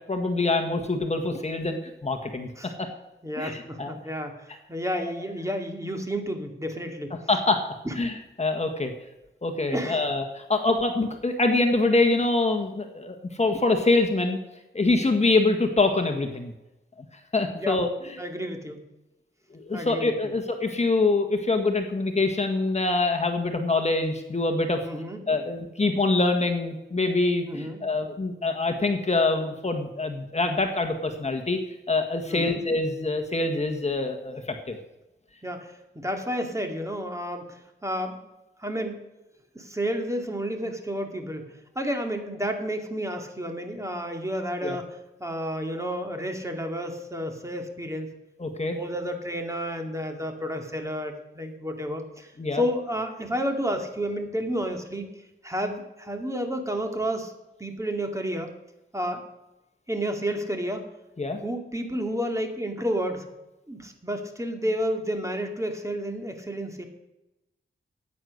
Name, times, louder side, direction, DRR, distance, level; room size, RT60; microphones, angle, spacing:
voice 1, 0.1-2.5 2.8-2.9 3.4-3.9 4.9-5.0 7.3-7.6 8.0-8.9 9.4-14.4 14.7-16.5 17.3-17.9 19.5-24.8 25.3-31.6 31.9-34.4 34.7-34.8 44.6-44.8 48.4-48.8 52.4-52.6 61.2-61.4, left 3 dB, 35° left, 4 dB, 1.5 m, -25 dB
voice 2, 3.2-7.1 7.8-8.0 9.6-10.1 17.6-17.8 18.2-18.8 19.7-20.1 24.8-25.2 27.5-27.8 32.3-32.6 35.4-38.2 38.6-39.1 39.5-41.5 41.8-48.1 48.6-55.1 55.4-57.3 57.6-58.5 58.9-59.2 59.9-60.9 61.4-63.3 63.7-66.9, equal, 15° right, 4 dB, 2.3 m, -31 dB
15.0 x 9.4 x 6.5 m, 0.95 s
wide cardioid pair, 105°, 21 cm